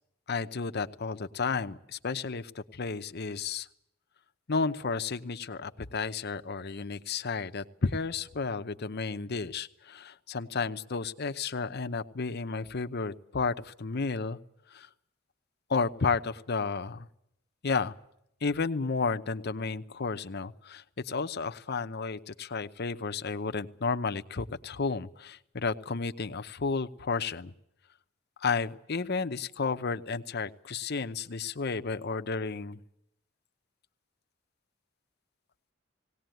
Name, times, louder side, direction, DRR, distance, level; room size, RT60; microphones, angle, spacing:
voice 1, 0.3-3.7 4.5-14.4 14.7-14.9 15.7-17.1 17.6-17.9 18.4-27.5 28.4-32.8, left 4 dB, 55° left, 9 dB, 0.8 m, -32 dB
18.5 x 18.5 x 9.2 m, 0.77 s
head